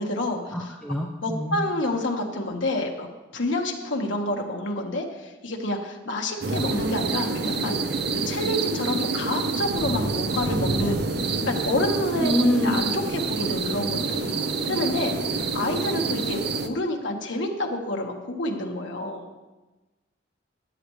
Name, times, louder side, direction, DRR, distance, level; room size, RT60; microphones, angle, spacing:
voice 1, 0.0-0.7 1.2-3.1 3.3-7.8 8.1-14.4 14.7-19.3, left 1 dB, 75° left, 1 dB, 1.6 m, -28 dB
voice 2, 0.5-1.7 12.2-12.8, equal, 5° left, -1 dB, 0.7 m, -25 dB
sound 1, 6.4-16.7, right 3 dB, 60° right, 0.7 m, -27 dB
14.5 x 10.5 x 3.3 m, 1.2 s
head